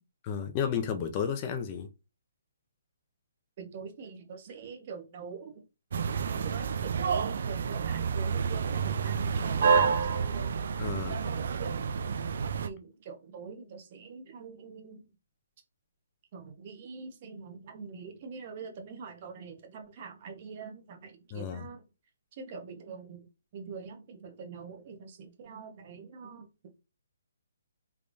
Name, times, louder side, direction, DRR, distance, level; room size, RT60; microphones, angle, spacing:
voice 1, 0.2-1.9 10.8-11.2 21.3-21.7, left 7 dB, 25° left, 0.5 m, -32 dB
voice 2, 3.6-5.6 6.1-10.6 11.2-11.7 12.6-15.0 16.3-21.8 22.3-23.3 23.5-26.5, right 5 dB, 35° right, 1.0 m, -44 dB
sound 1, 5.9-12.7, right 6 dB, 55° right, 0.4 m, -29 dB
3.4 x 3.1 x 2.6 m
hypercardioid pair, 160°, 0 cm